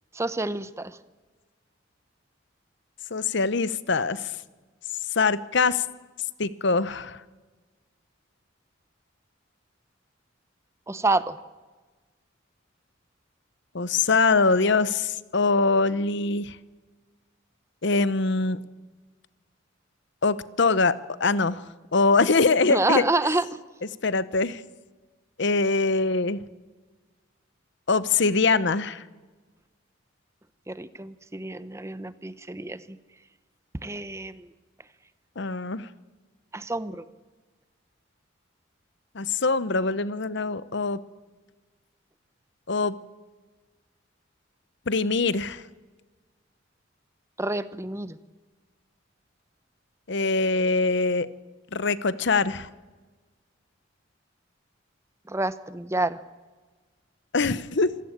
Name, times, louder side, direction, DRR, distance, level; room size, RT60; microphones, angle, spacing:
voice 1, 0.1-1.0 10.9-11.4 22.7-23.5 30.7-33.0 33.8-34.5 36.5-37.1 47.4-48.2 55.3-56.2, right 2 dB, 15° right, 14 dB, 0.8 m, -28 dB
voice 2, 3.1-4.2 5.2-5.8 6.4-7.2 13.7-16.6 17.8-18.6 20.2-21.6 21.9-23.0 24.0-24.6 25.4-26.4 27.9-29.0 35.4-35.9 39.1-41.0 42.7-42.9 44.9-45.6 50.1-51.3 51.7-52.7 57.3-57.9, left 4 dB, 60° left, 16 dB, 0.9 m, -23 dB
26.5 x 16.0 x 8.9 m, 1.3 s
head